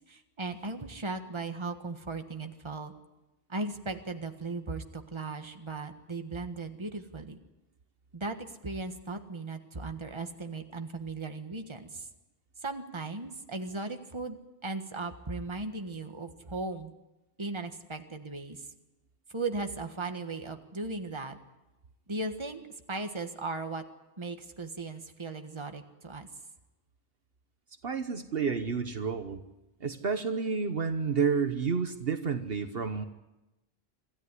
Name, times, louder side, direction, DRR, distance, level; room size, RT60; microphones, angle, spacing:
voice 1, 0.0-2.9 3.5-7.4 8.1-12.1 12.6-16.9 17.4-18.7 19.3-21.4 22.1-22.6 22.9-23.8 24.2-26.3, right 3 dB, 25° right, 6 dB, 1.5 m, -37 dB
voice 2, 27.8-29.4 29.8-33.0, right 5 dB, 60° right, 8 dB, 1.3 m, -30 dB
26.0 x 14.0 x 9.8 m, 1.0 s
omnidirectional pair, 1.1 m